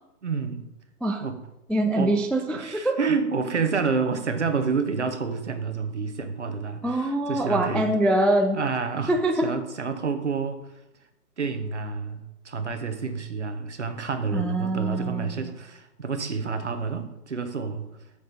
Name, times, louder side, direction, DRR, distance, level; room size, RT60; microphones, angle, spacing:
voice 1, 0.2-0.7 1.2-1.4 2.0-2.1 2.5-7.9 8.5-9.1 9.4-10.6 11.4-17.9, right 5 dB, 45° right, 7 dB, 1.0 m, -29 dB
voice 2, 1.7-3.0 6.8-8.6 9.1-9.5 14.3-15.4, right 1 dB, 5° left, 3 dB, 0.3 m, -24 dB
8.1 x 7.1 x 4.2 m, 0.90 s
hypercardioid pair, 175°, 48 cm